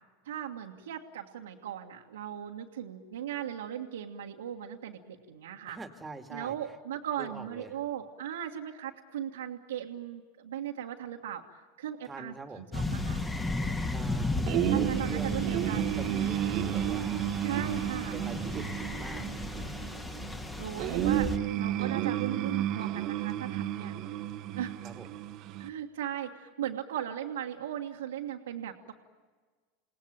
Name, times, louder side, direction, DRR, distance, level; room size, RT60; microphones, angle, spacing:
voice 1, 0.2-5.8 6.3-13.2 14.7-16.0 17.4-18.2 20.6-23.9 24.5-24.9 25.6-28.9, right 10 dB, 75° right, -2 dB, 1.8 m, -38 dB
voice 2, 5.7-6.8 7.2-7.8 12.0-12.7 13.8-17.5 18.1-19.3 24.8-25.1, right 3 dB, 15° right, 6 dB, 2.3 m, -44 dB
sound 1, 12.7-21.4, left 2 dB, 15° left, 2.5 m, -35 dB
sound 2, 14.5-25.7, right 12 dB, 45° right, 1.3 m, -32 dB
29.5 x 18.5 x 9.0 m, 1.5 s
figure-of-eight pair, 85°, 0 cm